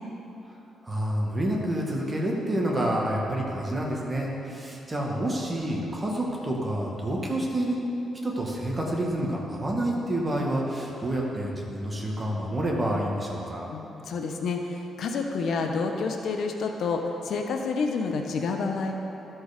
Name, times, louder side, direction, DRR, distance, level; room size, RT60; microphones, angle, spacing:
voice 1, 0.8-7.8 8.2-13.7, right 1 dB, 25° right, -2 dB, 1.7 m, -28 dB
voice 2, 13.7-18.9, left 4 dB, 70° left, 3 dB, 0.7 m, -29 dB
12.5 x 4.6 x 5.1 m, 3.0 s
cardioid pair, 75°, 0 cm